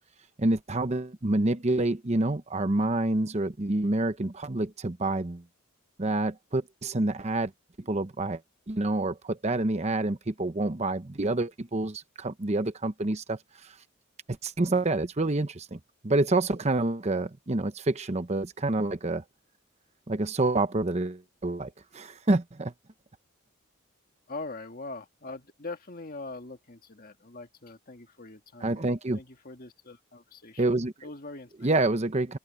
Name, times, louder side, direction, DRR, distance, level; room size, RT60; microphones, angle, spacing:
voice 1, 0.4-5.4 6.0-7.5 7.8-8.4 8.7-13.7 14.3-19.2 20.1-22.7 28.6-29.2 30.6-30.9 31.6-32.4, right 2 dB, 30° right, 0.8 m, -27 dB
voice 2, 24.3-30.7 31.0-31.7, left 3 dB, 40° left, 1.8 m, -42 dB
open air
head